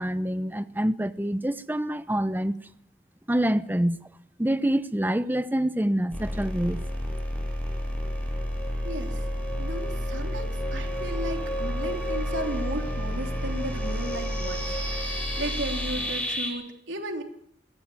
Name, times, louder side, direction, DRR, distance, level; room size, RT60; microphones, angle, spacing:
voice 1, 0.0-2.6 3.3-4.0 4.4-6.8, right 1 dB, 10° right, 0.8 m, -26 dB
sound 1, 6.1-16.5, equal, 5° left, 7.1 m, -30 dB
voice 2, 8.8-9.2 9.5-17.2, right 1 dB, 85° right, 3.3 m, -35 dB
21.5 x 15.0 x 9.5 m
head